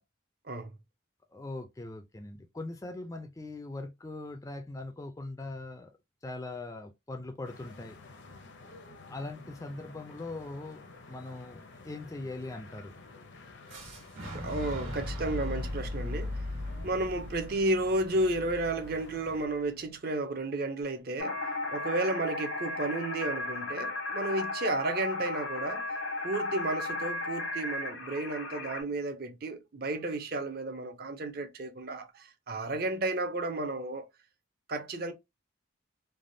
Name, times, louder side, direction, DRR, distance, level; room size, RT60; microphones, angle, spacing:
voice 1, 1.3-5.9 6.2-8.0 9.1-12.9, left 2 dB, 15° left, 0.3 m, -41 dB
sound 1, 7.4-19.5, left 3 dB, 60° left, 0.6 m, -51 dB
Fire / Explosion, 13.7-19.6, left 1 dB, 90° right, 1.5 m, -38 dB
voice 2, 14.3-16.3 16.8-21.4 21.7-25.9 26.2-34.1 34.7-35.1, right 2 dB, 50° right, 0.6 m, -32 dB
sound 2, 21.2-28.8, left 2 dB, 90° left, 1.2 m, -35 dB
3.3 x 2.1 x 2.6 m
head